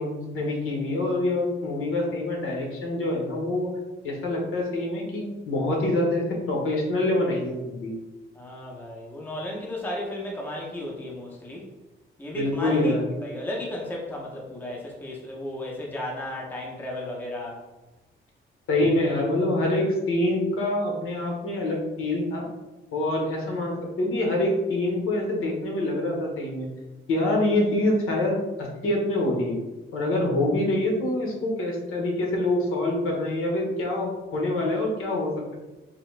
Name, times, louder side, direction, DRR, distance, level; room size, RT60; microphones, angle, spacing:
voice 1, 0.0-3.7 4.0-7.9 12.3-13.0 18.7-22.4 22.9-26.7 27.1-29.6 29.9-35.5, left 1 dB, 90° left, -1 dB, 1.0 m, -25 dB
voice 2, 8.3-11.7 12.2-17.7, left 1 dB, 10° left, -2 dB, 0.6 m, -34 dB
3.9 x 2.8 x 3.2 m, 1.1 s
wide cardioid pair, 175°, 21 cm